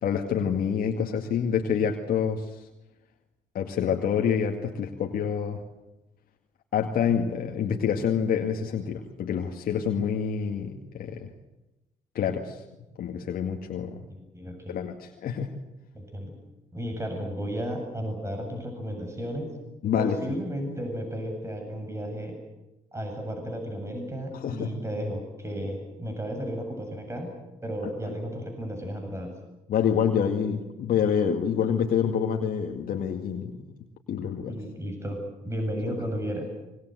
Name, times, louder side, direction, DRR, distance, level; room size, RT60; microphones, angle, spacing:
voice 1, 0.0-2.5 3.5-5.6 6.7-11.3 12.1-12.6 13.0-14.0 14.7-15.5 19.8-20.1 24.3-24.7 29.7-33.6 34.1-34.5 35.9-36.0, left 7 dB, 65° left, 2 dB, 2.2 m, -27 dB
voice 2, 14.1-14.8 15.9-16.3 16.7-19.5 20.0-22.4 22.9-27.3 27.6-29.3 34.5-35.2 35.4-36.5, equal, 15° right, 3 dB, 7.8 m, -33 dB
25.0 x 22.5 x 8.0 m, 0.97 s
supercardioid pair, 55°, 16 cm